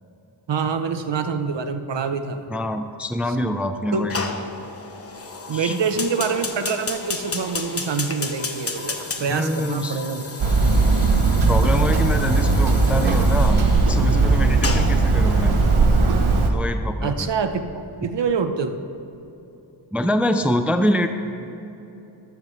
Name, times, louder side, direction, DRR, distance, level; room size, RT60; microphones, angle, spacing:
voice 1, 0.5-2.5 3.3-3.4 3.9-4.1 5.5-10.3 17.0-18.7, right 5 dB, 65° right, 8 dB, 0.9 m, -25 dB
voice 2, 2.5-4.3 5.5-5.8 9.3-10.0 11.5-15.6 16.5-17.3 19.9-21.1, equal, 5° right, 7 dB, 0.5 m, -25 dB
Fire, 4.1-15.8, left 3 dB, 30° left, 1.0 m, -33 dB
Hammer, 10.4-16.5, right 3 dB, 90° right, 1.1 m, -18 dB
13.5 x 12.5 x 3.2 m, 3.0 s
wide cardioid pair, 90°, 47 cm